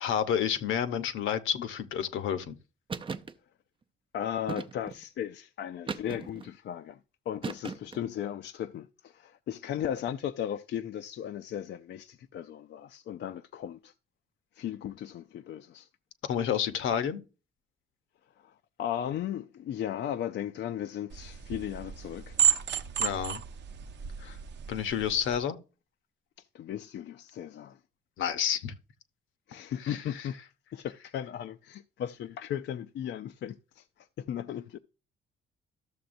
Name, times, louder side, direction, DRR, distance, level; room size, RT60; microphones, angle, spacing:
voice 1, 0.0-2.6 16.2-17.2 23.0-23.4 24.2-24.4 24.7-25.6 28.2-28.7 29.8-30.2, left 8 dB, 80° left, 0.9 m, -30 dB
sound 1, 2.9-3.3 4.5-5.0 5.9-6.5 7.4-8.1, right 5 dB, 25° right, 0.6 m, -37 dB
voice 2, 4.1-7.0 7.3-13.9 14.5-15.9 18.4-22.4 26.5-27.8 29.5-30.4 30.7-34.8, left 10 dB, 60° left, 0.5 m, -36 dB
sound 2, 21.1-25.4, right 8 dB, 65° right, 0.7 m, -31 dB
13.0 x 6.8 x 2.6 m
cardioid pair, 90°, 20 cm